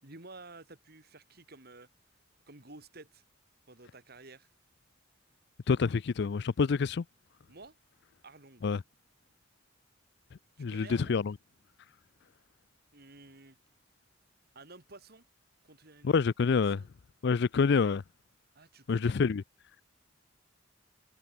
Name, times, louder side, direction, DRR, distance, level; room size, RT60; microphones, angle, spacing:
voice 1, 0.0-1.9 2.5-3.2 3.7-4.5 7.5-7.8 8.2-8.7 10.6-11.2 12.9-13.6 14.6-15.2 15.6-16.2 16.5-16.9 18.6-19.2, right 3 dB, 55° right, 3.5 m, -52 dB
voice 2, 5.7-7.0 8.6-8.8 10.6-11.3 16.0-16.8 17.2-18.0 18.9-19.4, left 5 dB, 60° left, 0.4 m, -27 dB
head